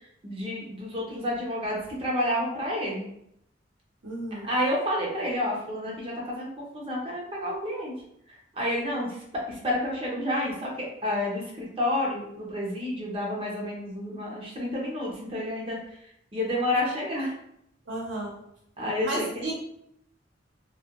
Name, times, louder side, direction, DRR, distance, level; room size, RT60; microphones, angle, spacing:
voice 1, 0.2-3.0 4.5-7.9 8.5-9.1 9.5-15.8 16.3-17.3 18.8-19.5, left 1 dB, 30° right, -3 dB, 0.7 m, -29 dB
voice 2, 4.0-4.5 17.9-18.3 19.0-19.5, right 1 dB, 75° right, -3 dB, 1.0 m, -32 dB
2.3 x 2.1 x 3.0 m, 0.74 s
head